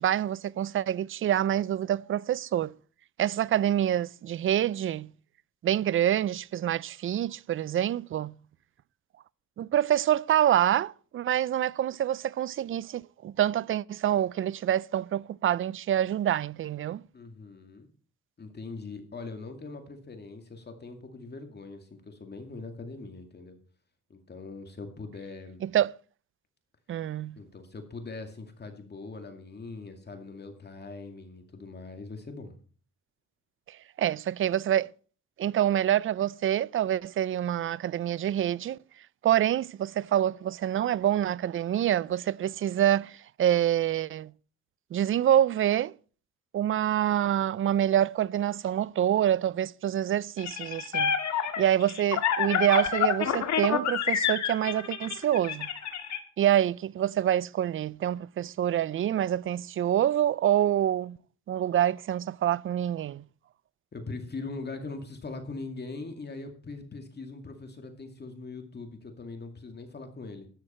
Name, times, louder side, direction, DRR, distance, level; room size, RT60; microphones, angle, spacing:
voice 1, 0.0-2.7 3.2-5.1 5.6-8.4 9.6-17.0 25.6-25.9 26.9-27.4 33.7-34.9 35.4-38.8 39.2-44.3 44.9-45.9 46.5-51.2 51.6-55.7 56.4-61.2 61.5-63.2, right 11 dB, 45° right, 0.4 m, -26 dB
voice 2, 17.1-17.9 18.4-23.6 24.1-25.6 27.4-32.5 63.9-70.5, left 3 dB, 35° left, 2.3 m, -41 dB
sound 1, 50.4-56.2, left 8 dB, 65° left, 1.9 m, -28 dB
13.0 x 9.8 x 4.4 m
cardioid pair, 90°, 30 cm